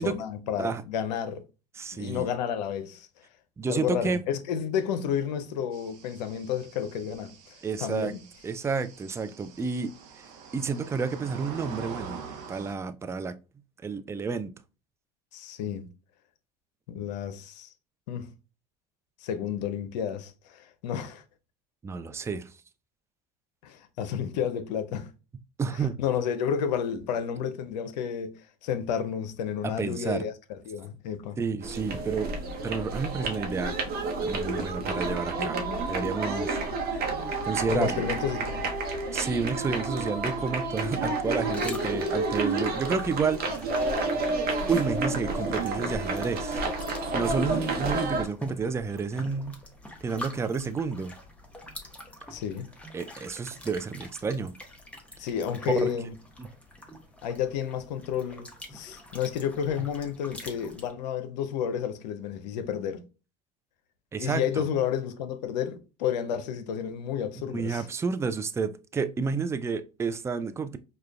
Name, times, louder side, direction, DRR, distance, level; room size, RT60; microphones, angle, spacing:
voice 1, 0.0-1.4 1.9-3.1 3.7-8.2 15.3-15.9 16.9-17.7 18.1-18.3 19.2-21.2 23.6-25.1 25.7-30.3 30.7-31.4 37.7-38.7 52.3-52.7 55.2-56.1 57.2-63.0 64.2-67.9, left 8 dB, 85° left, 0.6 m, -31 dB
voice 2, 1.8-2.2 3.6-4.2 7.6-8.1 8.4-9.9 10.5-12.2 12.5-13.3 13.8-14.5 21.8-22.5 25.6-26.0 29.8-30.2 31.4-32.3 32.6-33.8 34.2-35.6 35.9-36.6 36.9-37.0 37.4-38.0 39.1-43.7 44.7-46.6 47.1-49.6 50.0-51.1 52.9-54.5 55.8-55.9 56.4-56.5 64.1-64.6 67.5-70.8, right 5 dB, 15° right, 0.3 m, -30 dB
sound 1, 5.7-12.7, right 6 dB, 80° right, 0.7 m, -45 dB
sound 2, 31.6-48.2, right 3 dB, 45° right, 0.8 m, -30 dB
sound 3, 41.0-60.9, left 1 dB, 5° left, 0.9 m, -46 dB
4.9 x 2.2 x 2.3 m
hypercardioid pair, 90°, 21 cm